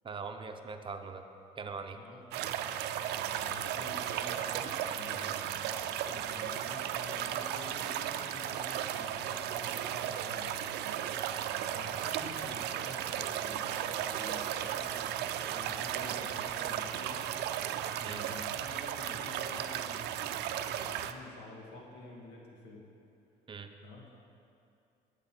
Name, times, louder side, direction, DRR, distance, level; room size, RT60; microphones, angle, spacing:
voice 1, 0.0-1.2 1.6-2.0 18.0-18.2 23.5-23.7, right 5 dB, 30° right, 6 dB, 0.8 m, -41 dB
voice 2, 1.9-2.7 3.3-10.8 11.7-17.2 18.0-22.8 23.8-24.1, left 2 dB, 80° left, -2 dB, 1.9 m, -50 dB
sound 1, 2.3-21.1, right 10 dB, 80° right, 0.5 m, -35 dB
12.5 x 8.1 x 4.5 m, 2.6 s
cardioid pair, 110°, 17 cm